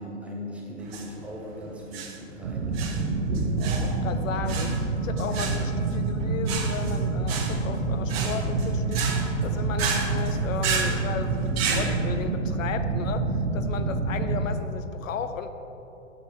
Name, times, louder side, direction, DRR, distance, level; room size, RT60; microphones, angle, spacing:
voice 1, 0.0-3.7 4.1-4.2 5.6-5.8, equal, 5° right, -4 dB, 0.6 m, -40 dB
sound 1, 0.8-11.9, right 4 dB, 50° right, 1.2 m, -32 dB
sound 2, 2.4-14.5, right 3 dB, 85° right, 0.9 m, -27 dB
voice 2, 3.8-15.5, left 6 dB, 75° left, 9 dB, 0.6 m, -35 dB
6.9 x 5.2 x 4.7 m, 2.9 s
hypercardioid pair, 125°, 39 cm